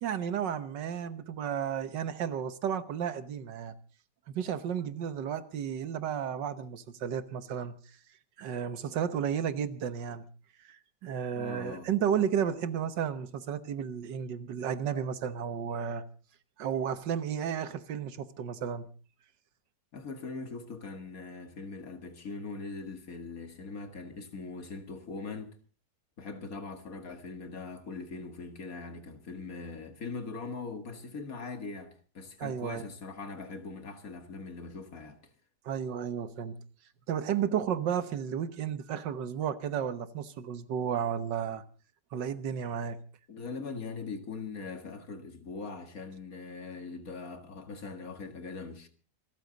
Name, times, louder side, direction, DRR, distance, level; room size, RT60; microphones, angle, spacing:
voice 1, 0.0-3.8 4.3-7.8 8.4-10.2 10.7-16.0 16.6-18.9 32.4-32.8 35.7-36.6 37.1-41.6 42.1-43.0, right 8 dB, 85° right, 1.8 m, -33 dB
voice 2, 11.3-11.9 19.9-25.5 26.2-35.2 43.3-48.9, left 4 dB, 55° left, 2.2 m, -41 dB
27.0 x 13.5 x 4.0 m
omnidirectional pair, 1.9 m